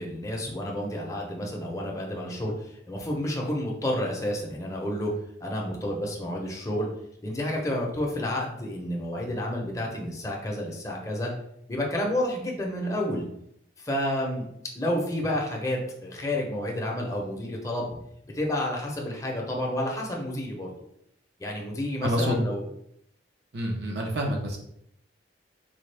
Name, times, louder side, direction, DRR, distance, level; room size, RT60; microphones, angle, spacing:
voice 1, 0.0-5.1 5.4-6.9 7.2-11.3 11.7-13.2 13.8-14.4 14.7-17.9 18.3-20.7 21.4-22.6, left 1 dB, 15° left, -1 dB, 0.7 m, -30 dB
voice 2, 22.0-22.4 23.5-24.6, equal, 60° right, -1 dB, 0.8 m, -27 dB
3.9 x 2.3 x 3.3 m, 0.73 s
head